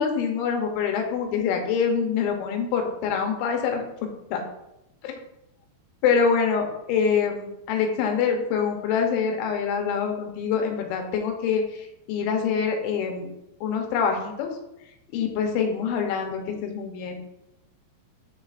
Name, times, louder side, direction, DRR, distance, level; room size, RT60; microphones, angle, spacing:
voice 1, 0.0-3.8 4.3-4.4 5.0-5.1 6.0-11.6 12.1-13.3 13.6-14.5 15.1-17.2, left 6 dB, 80° left, 3 dB, 3.1 m, -25 dB
11.5 x 3.8 x 2.5 m, 0.85 s
omnidirectional pair, 5.4 m